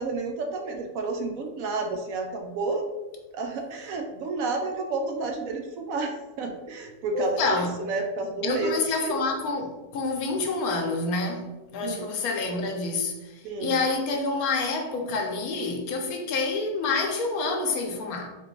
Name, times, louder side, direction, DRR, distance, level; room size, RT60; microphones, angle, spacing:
voice 1, 0.0-2.8 3.3-8.7 9.0-9.2 11.8-12.1 13.4-13.8, right 3 dB, 70° right, 4 dB, 0.9 m, -30 dB
voice 2, 7.1-7.8 8.4-11.5 11.7-18.3, left 3 dB, 75° left, 3 dB, 1.1 m, -28 dB
4.0 x 3.0 x 3.0 m, 1.1 s
omnidirectional pair, 1.6 m